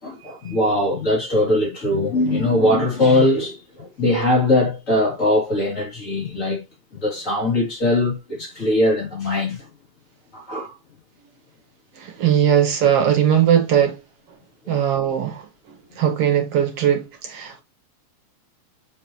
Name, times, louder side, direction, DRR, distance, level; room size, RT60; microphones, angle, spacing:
voice 1, 0.0-6.6 7.0-9.6 10.3-10.7 14.7-14.8, left 1 dB, 25° left, 3.3 m, -21 dB
voice 2, 12.0-14.0 14.7-15.4 15.7-17.6, right 9 dB, 60° right, 1.9 m, -19 dB
6.9 x 5.2 x 3.0 m
omnidirectional pair, 3.5 m